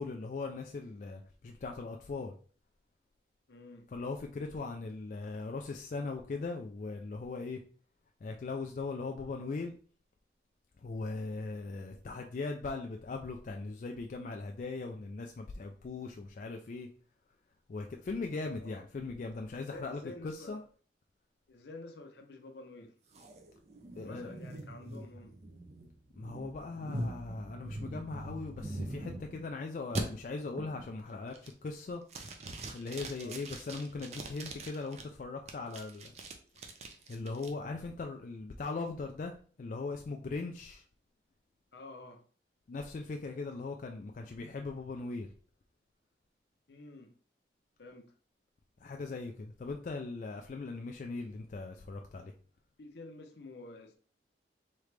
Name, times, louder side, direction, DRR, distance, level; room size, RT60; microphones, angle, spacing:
voice 1, 0.0-2.3 3.9-7.6 8.2-9.7 10.8-16.9 17.7-20.6 24.0-24.3 26.1-32.0 32.7-36.1 37.1-40.8 42.7-45.3 48.8-52.3, left 3 dB, 45° left, 0.3 m, -39 dB
voice 2, 3.5-3.9 18.6-18.8 19.7-20.6 21.5-22.9 24.0-25.4 33.2-33.4 41.7-42.2 46.7-47.1 47.8-48.1 52.8-54.0, left 2 dB, 75° left, 0.7 m, -49 dB
sound 1, 23.1-29.5 30.0-30.1 30.6-30.9 31.3-31.7 32.1-35.0 35.5-37.5, right 1 dB, 40° right, 0.5 m, -42 dB
3.7 x 3.2 x 3.2 m
head